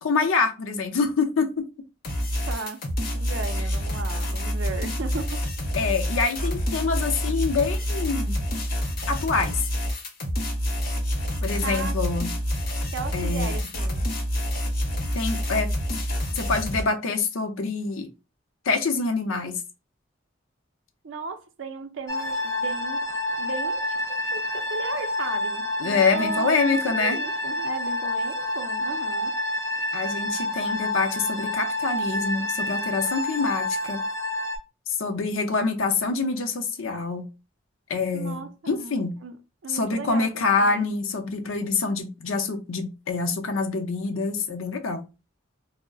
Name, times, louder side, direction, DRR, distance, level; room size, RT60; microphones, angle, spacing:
voice 1, 0.0-1.7 5.7-8.4 9.1-9.6 11.4-12.3 13.1-13.6 15.1-15.7 16.3-18.1 18.6-19.6 25.8-27.2 29.9-34.0 34.9-37.3 37.9-39.2 39.7-45.1, left 4 dB, 90° left, 0.6 m, -26 dB
sound 1, 2.0-16.8, equal, 45° left, 0.6 m, -27 dB
voice 2, 2.5-2.8 3.1-5.4 11.6-12.0 12.9-14.1 21.0-23.1 23.4-24.0 24.3-29.3 38.1-39.4 39.6-40.3 40.6-40.9, right 4 dB, 70° right, 0.4 m, -36 dB
sound 2, 22.1-34.6, left 1 dB, 15° left, 0.3 m, -28 dB
2.3 x 2.1 x 3.5 m
head